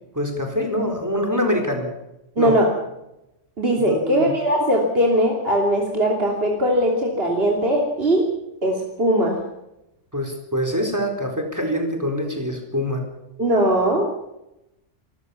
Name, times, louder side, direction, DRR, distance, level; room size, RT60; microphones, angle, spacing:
voice 1, 0.1-1.9 2.4-2.6 3.8-4.3 10.1-13.1, equal, 15° right, 4 dB, 4.1 m, -25 dB
voice 2, 2.4-2.7 3.6-8.3 8.6-9.4 13.4-14.1, equal, 55° right, 0 dB, 3.2 m, -20 dB
26.5 x 15.0 x 7.1 m, 0.90 s
omnidirectional pair, 1.2 m